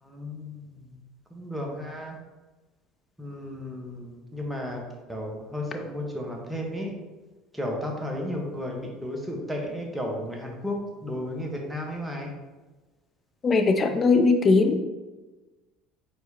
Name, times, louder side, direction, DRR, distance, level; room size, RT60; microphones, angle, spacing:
voice 1, 0.0-1.0 1.3-2.2 3.2-4.8 5.1-6.9 7.5-12.3, left 1 dB, 10° right, 0 dB, 1.1 m, -33 dB
voice 2, 13.4-14.8, left 3 dB, 35° left, 6 dB, 0.4 m, -20 dB
4.7 x 3.9 x 2.8 m, 1.2 s
figure-of-eight pair, 65°, 0 cm